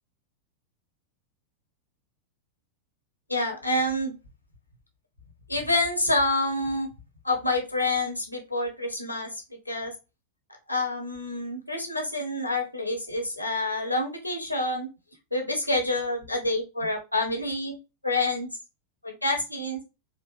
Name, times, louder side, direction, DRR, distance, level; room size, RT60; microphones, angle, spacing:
voice 1, 3.3-4.2 5.5-6.9 7.2-9.9 10.7-14.9 15.3-17.8 18.0-18.5 19.0-19.8, left 2 dB, 85° left, 3 dB, 1.1 m, -27 dB
4.4 x 2.5 x 2.7 m, 0.27 s
figure-of-eight pair, 90°, 0 cm